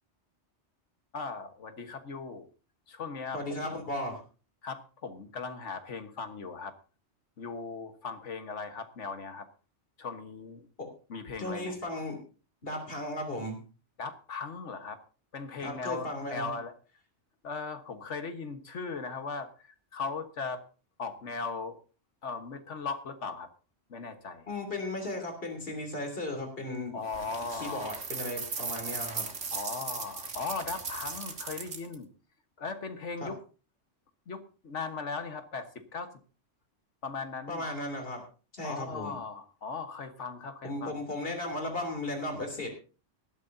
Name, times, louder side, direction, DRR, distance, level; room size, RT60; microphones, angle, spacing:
voice 1, 1.1-2.5 2.9-3.8 4.6-6.7 7.4-9.5 10.0-10.7 11.1-11.8 14.0-15.0 15.3-16.7 17.4-19.7 19.9-20.6 21.0-21.8 22.2-23.5 23.9-24.5 26.9-28.0 29.5-32.1 32.6-33.4 34.3-36.1 37.0-37.6 38.6-41.0, left 4 dB, 80° left, 8 dB, 1.7 m, -38 dB
voice 2, 3.3-4.2 10.8-10.9 11.4-12.2 12.6-13.6 15.6-16.5 24.5-27.0 27.5-29.2 33.2-33.3 37.5-38.2 38.5-39.2 40.6-42.7, left 1 dB, 50° left, 3 dB, 3.4 m, -35 dB
sound 1, 27.1-31.9, right 4 dB, 85° right, 2.0 m, -38 dB
19.5 x 12.5 x 2.7 m, 0.35 s
omnidirectional pair, 1.2 m